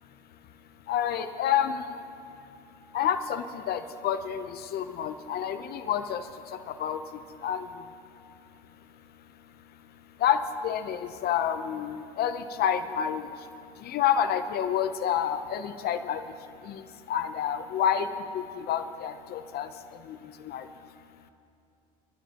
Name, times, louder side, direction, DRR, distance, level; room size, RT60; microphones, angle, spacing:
voice 1, 0.9-2.0 2.9-7.9 10.2-13.5 13.8-20.7, left 9 dB, 55° left, 10 dB, 0.7 m, -29 dB
30.0 x 12.5 x 2.9 m, 2.5 s
supercardioid pair, 100°, 19 cm